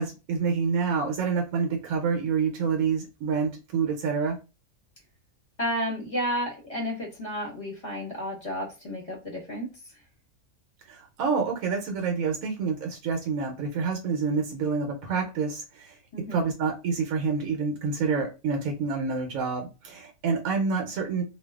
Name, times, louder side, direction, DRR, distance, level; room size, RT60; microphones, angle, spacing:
voice 1, 0.0-4.4 10.9-16.0 16.3-21.2, right 5 dB, 75° right, 2 dB, 1.1 m, -27 dB
voice 2, 5.6-9.7 16.1-16.5, equal, 25° left, -4 dB, 1.2 m, -32 dB
2.5 x 2.4 x 2.3 m, 0.29 s
omnidirectional pair, 1.5 m